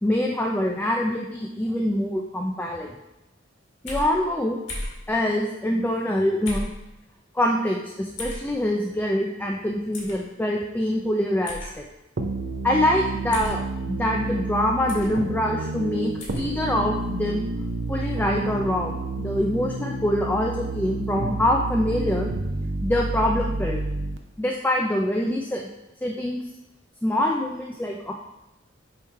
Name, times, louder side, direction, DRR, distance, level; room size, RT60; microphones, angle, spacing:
voice 1, 0.0-3.0 3.8-4.6 5.1-6.7 7.4-11.8 12.6-17.5 17.9-22.3 22.8-23.8 24.4-25.7 26.0-26.4 27.0-28.1, left 1 dB, 10° left, 0 dB, 0.4 m, -25 dB
sound 1, 3.9-4.1 4.7-5.0 6.5-6.8 8.2-8.4 9.9-10.2 11.5-11.7 13.3-13.6 14.9-15.1 16.2-16.5, left 1 dB, 65° left, 1.8 m, -33 dB
sound 2, 12.2-24.2, right 2 dB, 65° right, 0.6 m, -30 dB
7.1 x 3.1 x 4.5 m, 0.93 s
head